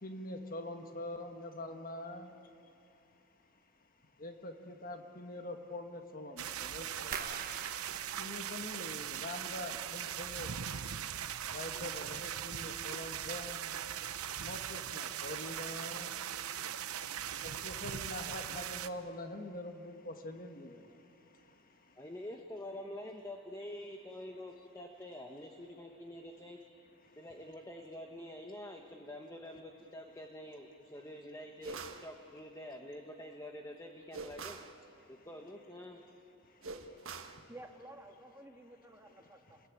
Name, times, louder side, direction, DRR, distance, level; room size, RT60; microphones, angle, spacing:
voice 1, 0.0-2.3 4.2-7.4 8.2-10.5 11.5-13.7 14.4-16.1 17.4-20.8, left 1 dB, 40° left, 6 dB, 1.6 m, -44 dB
sound 1, 6.4-18.9, right 9 dB, 85° right, 0.9 m, -40 dB
sound 2, 7.1-10.0 10.3-11.0 11.3-11.7 12.2-12.3, right 6 dB, 40° right, 1.3 m, -46 dB
voice 2, 22.0-26.6 27.2-34.6 35.1-36.0, left 1 dB, 15° left, 3 dB, 1.2 m, -47 dB
sound 3, 31.6-32.1 34.1-34.7 36.6-37.4, right 3 dB, 65° right, 1.5 m, -44 dB
voice 3, 37.5-39.6, right 1 dB, 10° right, 3 dB, 1.7 m, -52 dB
29.0 x 21.5 x 8.8 m, 2.6 s
head